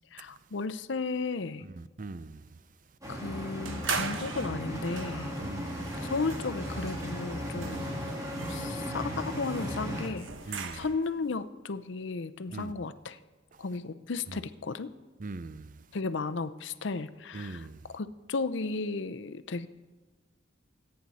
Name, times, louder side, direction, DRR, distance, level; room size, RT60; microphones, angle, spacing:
voice 1, 0.1-1.7 3.1-5.3 6.0-8.0 8.5-13.2 13.6-14.9 15.9-19.7, left 4 dB, 70° left, 0.6 m, -34 dB
voice 2, 1.6-2.5 5.4-5.9 7.6-8.0 10.5-10.9 12.5-12.7 15.2-15.8 17.3-17.9, right 3 dB, 40° right, 0.5 m, -41 dB
sound 1, 3.0-10.1, equal, 15° right, 2.4 m, -36 dB
sound 2, 3.7-11.2, right 5 dB, 80° right, 1.1 m, -40 dB
25.0 x 9.6 x 4.2 m
head